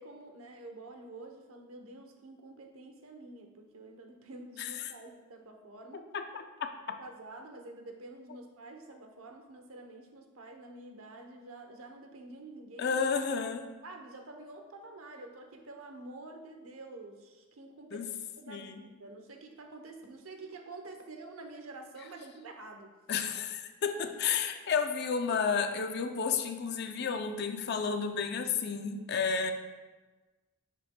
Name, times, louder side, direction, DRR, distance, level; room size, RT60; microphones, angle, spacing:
voice 1, 0.0-6.1 7.0-13.0 13.8-18.0 18.4-22.9, right 2 dB, 85° right, 4 dB, 0.8 m, -48 dB
voice 2, 4.6-4.9 6.1-6.4 6.9-7.0 12.8-13.6 17.9-18.1 18.5-18.8 23.1-29.5, left 6 dB, 50° left, 6 dB, 0.4 m, -31 dB
9.8 x 5.1 x 2.2 m, 1.3 s
head